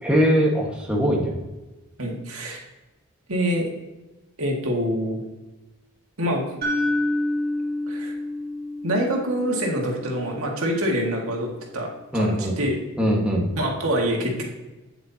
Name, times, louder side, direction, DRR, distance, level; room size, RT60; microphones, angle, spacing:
voice 1, 0.0-1.3 12.1-12.6 13.0-13.5, equal, 5° right, -2 dB, 1.5 m, -21 dB
voice 2, 2.0-2.6 3.3-3.7 4.4-5.2 6.2-6.5 7.9-8.2 8.8-12.8 13.6-14.5, equal, 90° right, 0 dB, 2.0 m, -25 dB
sound 1, 6.6-10.7, left 1 dB, 45° right, 3.0 m, -28 dB
9.0 x 7.9 x 2.8 m, 1.1 s
head